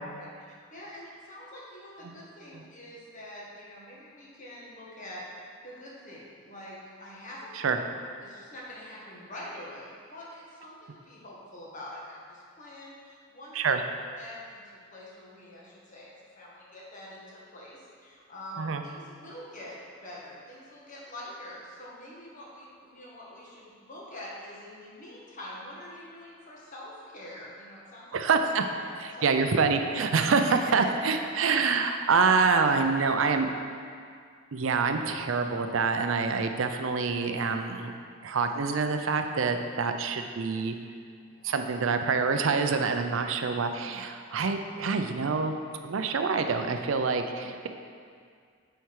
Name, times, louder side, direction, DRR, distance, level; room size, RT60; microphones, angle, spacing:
voice 1, 0.7-7.5 8.2-13.6 14.2-14.6 14.9-28.1 28.8-29.3 30.5-30.7 31.0-31.4 32.6-33.1 41.3-41.5 44.3-44.4, left 1 dB, 40° left, -5 dB, 1.6 m, -45 dB
voice 2, 28.1-28.7 29.0-33.5 34.5-37.9 38.2-40.8 41.4-45.6 45.8-47.7, right 4 dB, 75° right, 6 dB, 0.5 m, -26 dB
8.1 x 4.5 x 4.7 m, 2.2 s
head